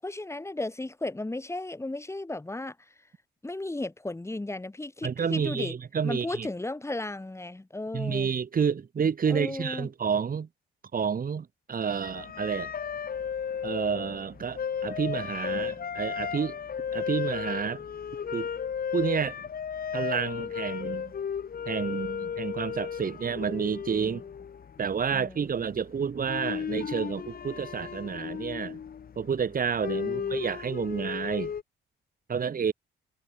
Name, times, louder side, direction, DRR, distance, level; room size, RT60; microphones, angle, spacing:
voice 1, 0.0-2.9 3.4-5.8 6.0-8.3 9.3-9.9 24.0-24.2 25.1-25.5 30.0-30.5, left 2 dB, 15° left, 6.1 m, -35 dB
voice 2, 5.0-6.5 7.9-10.5 10.9-12.7 13.6-16.6 16.9-17.8 18.3-18.5 18.9-19.4 19.9-21.1 21.7-24.2 24.8-28.8 29.2-31.5 32.3-32.7, right 6 dB, 45° right, 5.5 m, -30 dB
sound 1, 12.0-31.6, left 7 dB, 50° left, 3.2 m, -35 dB
cardioid pair, 90°, 20 cm